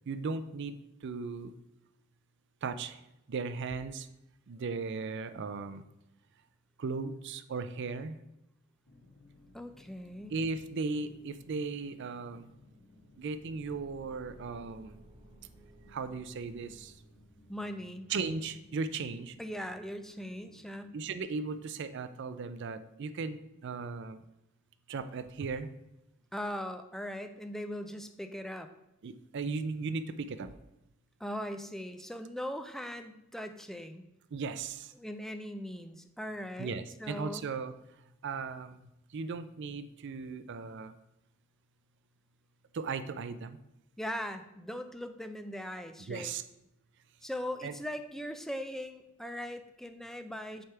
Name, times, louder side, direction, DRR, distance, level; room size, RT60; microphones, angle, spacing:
voice 1, 0.1-1.5 2.6-3.0 3.3-4.1 4.5-5.8 6.8-8.2 10.3-12.5 13.2-15.0 15.9-17.0 18.1-19.4 20.9-24.2 24.9-25.7 29.0-30.5 34.3-34.9 36.6-37.7 38.2-38.8 39.1-40.9 42.7-43.6 46.0-46.4 47.6-47.7, right 4 dB, 60° right, 11 dB, 0.4 m, -37 dB
sound 1, 8.8-22.0, left 1 dB, 75° left, 1.2 m, -60 dB
voice 2, 9.5-10.4 17.5-18.1 19.4-21.0 26.3-28.7 31.2-34.0 35.0-37.5 44.0-46.3 47.2-50.6, equal, ahead, 8 dB, 0.4 m, -40 dB
Car / Engine, 13.0-17.5, right 1 dB, 25° right, 0.7 m, -58 dB
7.8 x 3.4 x 5.7 m, 0.87 s
head